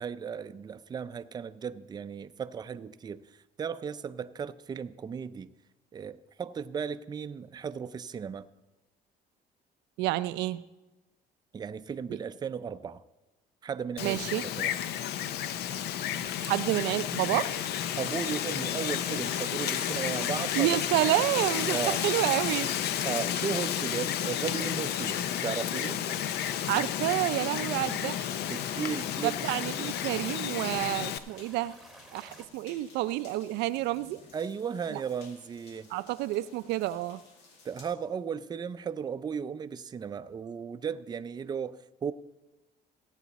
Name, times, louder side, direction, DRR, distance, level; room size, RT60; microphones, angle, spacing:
voice 1, 0.0-5.5 5.9-8.5 11.5-13.0 13.6-14.2 14.6-14.7 18.0-20.8 21.7-22.0 23.0-26.0 28.5-29.4 34.3-35.9 37.6-42.1, right 7 dB, 25° right, 0.4 m, -35 dB
voice 2, 10.0-10.6 14.0-14.4 16.4-17.5 20.5-22.7 26.7-28.3 29.2-31.8 32.1-34.2 34.9-35.0 35.9-37.2, right 16 dB, 90° right, 0.4 m, -29 dB
Wind, 14.0-31.2, left 10 dB, 75° left, 0.6 m, -32 dB
sound 1, 14.1-32.5, right 1 dB, ahead, 1.2 m, -52 dB
sound 2, 21.7-37.8, left 3 dB, 90° left, 2.0 m, -55 dB
17.0 x 8.2 x 4.1 m
cardioid pair, 110°, 17 cm